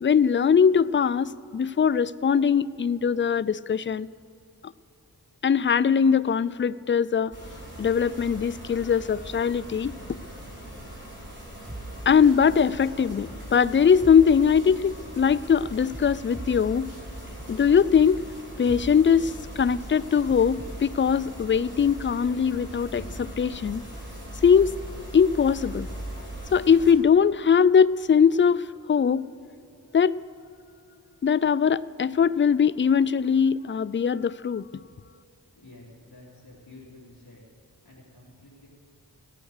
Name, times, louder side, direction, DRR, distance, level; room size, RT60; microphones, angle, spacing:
voice 1, 0.0-4.1 5.4-7.3 7.8-9.9 12.1-16.9 17.5-18.2 18.6-23.8 24.4-24.7 25.1-25.9 26.5-28.6 28.9-29.3 29.9-30.2 31.2-34.6, left 7 dB, 30° left, 19 dB, 0.4 m, -21 dB
sound 1, 7.3-26.9, right 1 dB, 30° right, 4.2 m, -40 dB
sound 2, 11.6-20.9, right 1 dB, 55° right, 3.6 m, -43 dB
voice 2, 35.5-37.4 37.8-38.7, left 2 dB, 70° left, -7 dB, 3.6 m, -50 dB
17.0 x 9.2 x 6.5 m, 2.6 s
wide cardioid pair, 50°, 39 cm